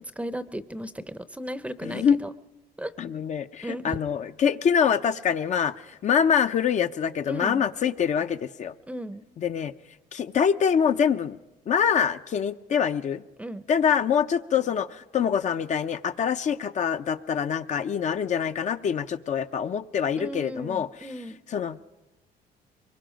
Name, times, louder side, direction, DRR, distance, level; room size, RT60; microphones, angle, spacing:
voice 1, 0.2-2.3 2.8-2.9 3.6-4.0 7.3-7.7 8.9-9.2 13.4-13.6 20.2-21.4, equal, 10° right, 14 dB, 0.7 m, -35 dB
voice 2, 1.8-2.2 3.0-5.7 6.0-8.7 9.4-9.7 10.1-11.4 11.7-13.2 13.7-21.1 21.5-21.8, left 7 dB, 45° left, 9 dB, 0.7 m, -25 dB
23.5 x 22.0 x 5.2 m, 1.0 s
cardioid pair, 110°, 17 cm